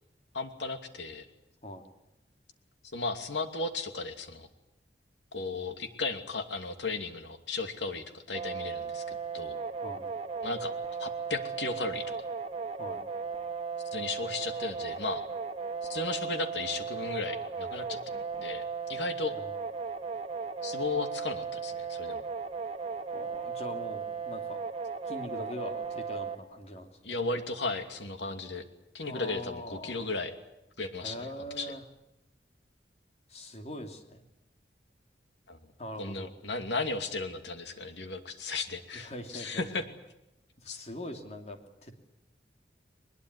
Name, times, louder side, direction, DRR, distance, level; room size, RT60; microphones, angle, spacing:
voice 1, 0.3-1.2 2.9-4.5 5.3-9.6 10.4-10.7 11.0-12.1 13.9-15.2 15.9-19.3 20.6-22.2 27.0-28.7 28.9-30.3 30.8-31.3 31.5-31.7 35.5-35.6 36.0-39.8 40.7-40.8, left 3 dB, 85° left, 7 dB, 2.7 m, -35 dB
sound 1, 8.3-26.4, right 5 dB, 35° right, 2.2 m, -36 dB
voice 2, 23.1-24.6 25.0-27.2 29.0-30.1 31.0-31.8 33.3-34.2 35.8-36.3 38.9-39.7 40.6-42.0, equal, 35° left, 5 dB, 3.0 m, -42 dB
22.0 x 21.0 x 9.8 m, 0.87 s
head